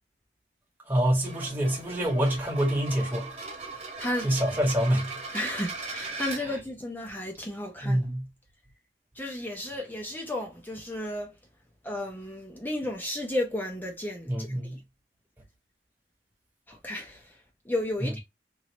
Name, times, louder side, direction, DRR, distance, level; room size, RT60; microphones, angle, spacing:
voice 1, 0.9-3.3 4.2-5.1 7.8-8.2 14.3-14.8, right 1 dB, 10° right, 1.3 m, -26 dB
sound 1, 1.1-6.4, right 3 dB, 35° right, 1.3 m, -39 dB
voice 2, 5.3-8.0 9.1-11.3 11.8-14.8 16.7-18.2, left 1 dB, 10° left, 0.7 m, -33 dB
3.1 x 2.7 x 2.9 m
head